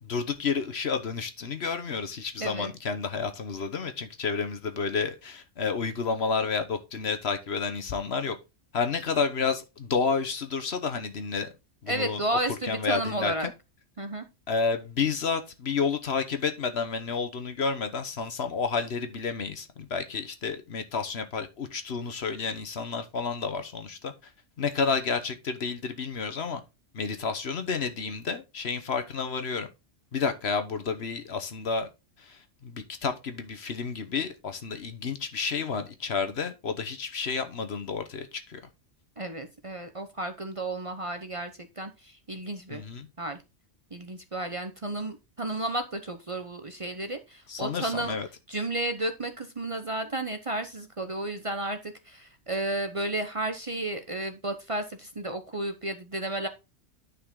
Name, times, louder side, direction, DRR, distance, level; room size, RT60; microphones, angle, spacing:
voice 1, 0.0-8.4 8.7-11.5 11.8-12.2 12.7-13.5 14.5-24.1 24.6-26.6 26.9-29.7 30.1-31.9 32.2-38.6 42.7-43.1 47.5-48.3, left 5 dB, 60° left, 1.3 m, -30 dB
voice 2, 2.4-2.7 11.9-13.5 14.0-14.3 39.2-42.8 43.2-43.4 43.9-48.2 48.5-56.5, right 1 dB, 30° right, 0.8 m, -32 dB
9.9 x 5.5 x 3.7 m
omnidirectional pair, 1.3 m